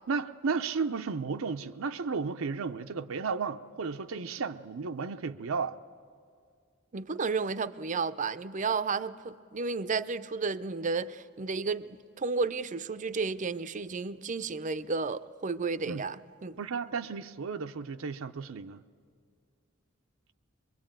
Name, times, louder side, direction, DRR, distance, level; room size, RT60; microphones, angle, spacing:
voice 1, 0.1-5.8 15.9-16.0 16.6-18.8, right 5 dB, 80° right, 0.6 m, -33 dB
voice 2, 6.9-16.6, right 4 dB, 35° right, 0.5 m, -32 dB
23.5 x 21.5 x 9.0 m
head